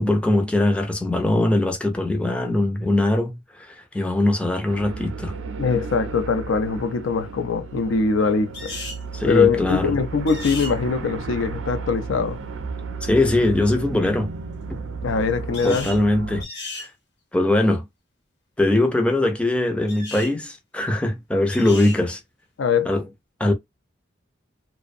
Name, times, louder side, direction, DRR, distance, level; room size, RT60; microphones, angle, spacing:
voice 1, 0.0-5.4 9.1-9.9 13.0-14.3 15.6-16.4 16.8-16.9 17.3-17.8 18.6-22.2 22.9-23.1 23.4-23.5, left 1 dB, 5° left, 0.3 m, -21 dB
sound 1, 4.7-16.4, right 4 dB, 90° right, 0.4 m, -34 dB
voice 2, 5.6-8.7 9.3-12.4 15.0-15.9 22.6-22.9, left 5 dB, 85° left, 0.4 m, -22 dB
sound 2, 8.5-9.0 10.3-10.7 15.5-16.0 16.4-16.9 19.9-20.3 21.5-22.0, left 2 dB, 60° left, 0.9 m, -35 dB
2.5 x 2.0 x 2.4 m
head